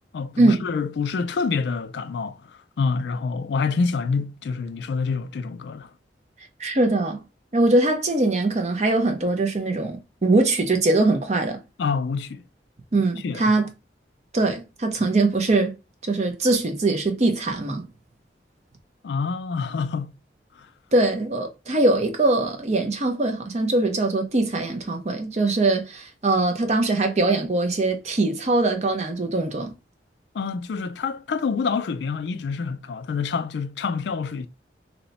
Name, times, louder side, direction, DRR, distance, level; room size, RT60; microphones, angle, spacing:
voice 1, 0.1-5.9 11.8-12.4 13.2-13.6 19.0-20.2 30.3-34.5, left 5 dB, 75° left, 0.4 m, -27 dB
voice 2, 6.6-7.2 7.5-11.6 12.9-13.7 14.3-15.7 16.0-17.8 20.9-29.7, right 2 dB, 40° right, 0.6 m, -22 dB
2.8 x 2.1 x 4.0 m
head